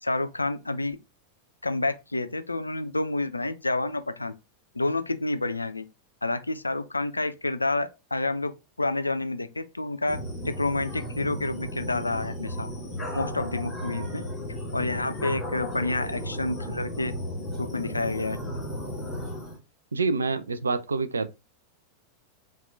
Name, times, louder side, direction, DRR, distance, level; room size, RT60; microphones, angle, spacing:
voice 1, 0.0-1.0 1.6-4.3 4.7-5.8 6.2-8.5 8.8-10.2 10.4-12.7 13.1-14.2 14.7-17.1 17.6-18.4, left 2 dB, 80° left, 0.3 m, -29 dB
sound 1, 10.1-19.6, equal, 10° left, 1.9 m, -34 dB
voice 2, 19.9-21.3, right 4 dB, 75° right, 0.3 m, -27 dB
4.1 x 2.2 x 2.5 m
figure-of-eight pair, 90°, 0 cm